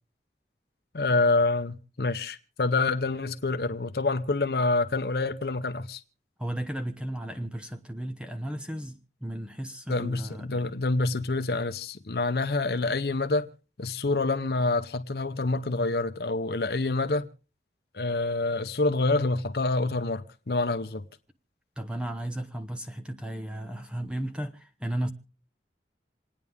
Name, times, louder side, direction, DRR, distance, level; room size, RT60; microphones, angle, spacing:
voice 1, 0.9-6.0 9.9-13.5 13.8-17.3 17.9-21.1, left 3 dB, 65° left, 0.8 m, -27 dB
voice 2, 6.4-10.6 21.8-25.1, right 1 dB, 5° right, 1.0 m, -34 dB
28.0 x 9.6 x 3.6 m
head